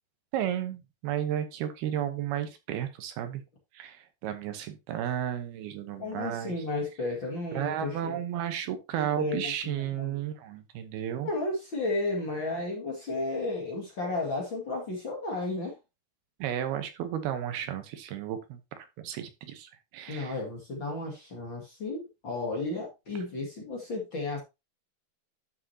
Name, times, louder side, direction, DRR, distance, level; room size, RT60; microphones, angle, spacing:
voice 1, 0.3-3.4 3.7-6.5 7.5-11.3 16.4-20.4, right 10 dB, 75° right, 9 dB, 2.9 m, -33 dB
voice 2, 6.0-8.2 8.9-10.2 11.2-15.8 20.1-24.4, left 2 dB, 35° left, -1 dB, 2.1 m, -33 dB
12.5 x 6.3 x 2.8 m, 0.24 s
omnidirectional pair, 4.6 m